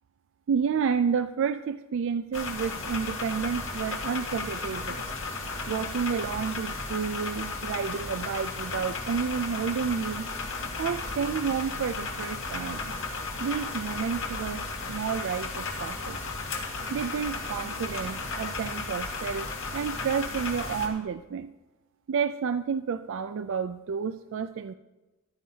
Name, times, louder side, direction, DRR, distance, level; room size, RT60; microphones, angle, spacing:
voice 1, 0.5-5.0 5.7-10.3 10.8-12.9 13.4-16.2 16.9-21.5 22.1-24.7, right 6 dB, 60° right, 10 dB, 0.3 m, -30 dB
sound 1, 2.3-20.9, left 3 dB, 65° left, 1.8 m, -34 dB
14.5 x 11.0 x 2.8 m, 1.1 s
head